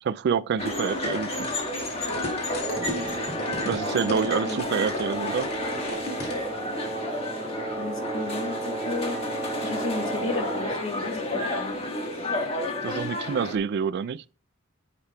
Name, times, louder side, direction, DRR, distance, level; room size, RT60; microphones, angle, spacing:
voice 1, 0.0-1.5 3.6-5.5 12.8-14.2, right 6 dB, 50° right, 0.3 m, -27 dB
sound 1, 0.6-13.6, left 1 dB, 30° left, 1.4 m, -31 dB
sound 2, 0.9-6.4, left 1 dB, 50° left, 2.4 m, -35 dB
Wind instrument woodwind instrument, 2.6-10.9, right 4 dB, 15° right, 1.4 m, -35 dB
voice 2, 7.7-9.2 9.6-11.7, left 3 dB, 65° left, 1.9 m, -33 dB
9.8 x 7.3 x 2.2 m
head